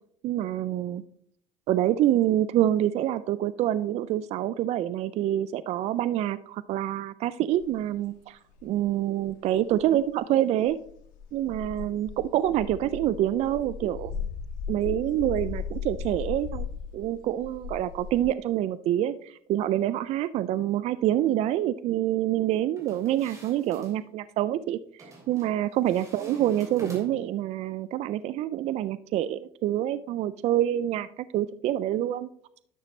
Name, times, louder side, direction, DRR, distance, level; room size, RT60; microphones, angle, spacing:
voice 1, 0.2-1.0 1.7-10.8 11.3-14.1 14.7-16.7 16.9-32.3, right 12 dB, 50° right, 16 dB, 0.4 m, -26 dB
sound 1, 7.5-7.6 8.5-8.6 9.2-9.3 9.5-10.0 10.6-18.2, left 7 dB, 70° left, 1.7 m, -37 dB
sound 2, 22.8-24.0 25.0-25.5 25.9-27.3, right 2 dB, 20° right, 2.9 m, -45 dB
11.0 x 6.1 x 3.2 m, 0.65 s
supercardioid pair, 105°, 14 cm